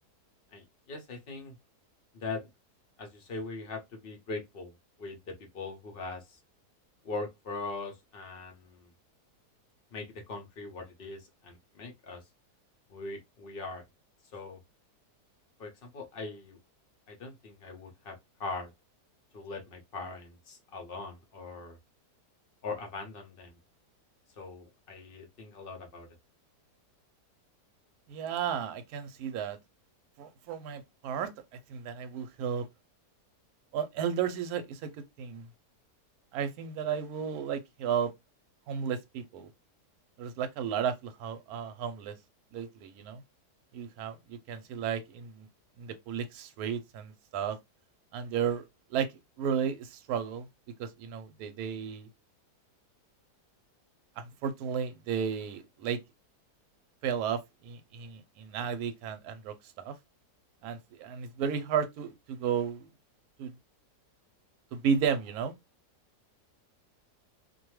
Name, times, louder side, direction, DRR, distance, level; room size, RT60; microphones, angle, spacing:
voice 1, 0.5-1.6 2.1-2.5 3.0-6.4 7.0-8.9 9.9-12.2 12.9-13.8 14.3-14.6 15.6-16.6 17.1-18.7 19.3-21.8 22.6-23.6 24.4-26.1, left 3 dB, 55° left, 0.6 m, -41 dB
voice 2, 28.1-29.6 30.2-31.3 31.7-32.7 33.7-34.9 35.2-35.5 36.3-38.1 38.7-39.5 40.2-42.1 42.5-43.2 43.7-45.5 45.8-47.6 48.1-48.6 48.9-49.1 49.4-50.5 50.8-52.1 54.2-56.0 57.0-59.9 60.6-62.9 63.4-63.5 64.7-65.5, right 7 dB, 75° right, 1.0 m, -33 dB
2.6 x 2.2 x 3.0 m
omnidirectional pair, 1.8 m